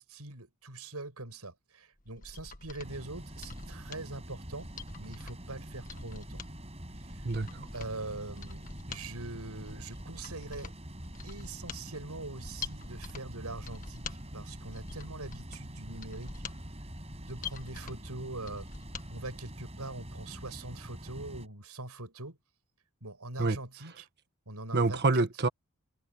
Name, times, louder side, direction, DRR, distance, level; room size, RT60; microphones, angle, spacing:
voice 1, 0.0-4.7 5.0-6.4 7.0-7.3 7.7-10.7 11.2-16.4 17.3-18.7 19.1-22.4 23.0-24.1 24.4-25.3, right 2 dB, 90° right, 6.9 m, -43 dB
Mechanisms, 2.0-19.1 19.4-19.5, left 5 dB, 35° left, 1.6 m, -46 dB
sound 1, 2.8-21.5, equal, 30° right, 6.5 m, -45 dB
voice 2, 7.2-7.7 23.4-23.6 24.7-25.5, right 3 dB, 50° right, 1.4 m, -27 dB
head